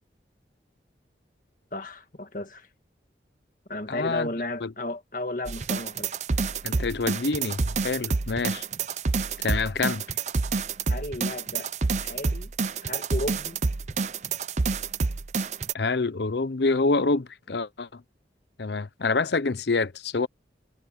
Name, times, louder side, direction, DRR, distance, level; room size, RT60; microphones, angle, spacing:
voice 1, 1.7-2.7 3.7-6.1 6.8-6.9 10.9-11.7 12.0-12.5 12.8-13.6, left 1 dB, 50° left, 1.7 m, -34 dB
voice 2, 3.9-4.3 4.6-4.7 6.6-8.6 9.4-10.0 15.7-18.0 18.6-20.3, left 3 dB, 70° left, 0.7 m, -26 dB
sound 1, 5.5-15.7, right 4 dB, 40° right, 0.6 m, -28 dB
head